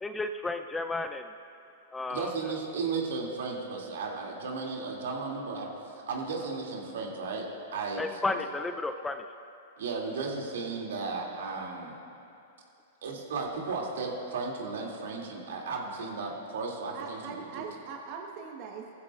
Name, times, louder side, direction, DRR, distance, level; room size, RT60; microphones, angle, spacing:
voice 1, 0.0-1.3 1.9-2.3 8.0-9.3, left 2 dB, 10° left, 7 dB, 0.5 m, -32 dB
voice 2, 2.1-7.5 7.7-8.4 9.8-12.0 13.0-17.6, right 4 dB, 70° right, -1 dB, 2.7 m, -35 dB
voice 3, 16.9-19.0, right 5 dB, 45° right, 1 dB, 1.3 m, -41 dB
20.0 x 15.0 x 2.5 m, 2.6 s
hypercardioid pair, 110°, 0 cm